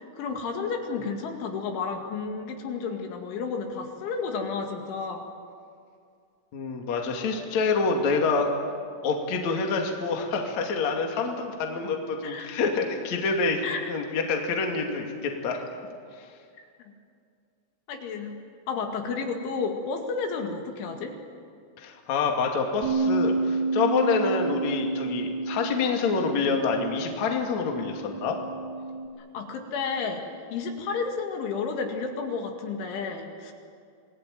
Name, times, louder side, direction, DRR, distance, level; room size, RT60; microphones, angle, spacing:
voice 1, 0.1-5.2 12.2-12.5 13.6-13.9 17.9-18.4 18.7-21.1 29.3-30.3 30.5-33.5, left 5 dB, 75° left, 3 dB, 4.5 m, -31 dB
voice 2, 6.5-8.5 9.0-15.6 21.8-28.4, left 4 dB, 45° left, 2 dB, 3.1 m, -27 dB
Bass guitar, 22.8-29.1, right 3 dB, 25° right, 4.0 m, -30 dB
28.0 x 20.5 x 9.3 m, 2.3 s
omnidirectional pair, 5.7 m